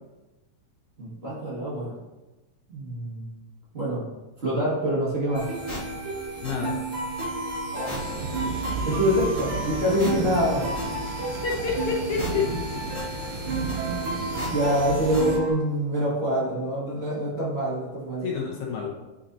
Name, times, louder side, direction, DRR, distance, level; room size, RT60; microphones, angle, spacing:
voice 1, 1.0-1.9 2.7-3.3 3.7-4.1 4.4-5.5 7.7-7.9 8.8-10.7 14.5-18.3, equal, 70° right, -8 dB, 0.5 m, -25 dB
sound 1, 5.3-15.3, left 1 dB, 40° left, 0.5 m, -39 dB
sound 2, 5.3-15.5, right 2 dB, 55° right, 1.7 m, -33 dB
voice 2, 6.4-6.8 11.4-12.5 18.2-18.9, left 5 dB, 70° left, -2 dB, 2.0 m, -28 dB
sound 3, 7.9-15.4, right 4 dB, 90° right, 2.5 m, -34 dB
8.8 x 4.2 x 2.7 m, 1.1 s
omnidirectional pair, 3.9 m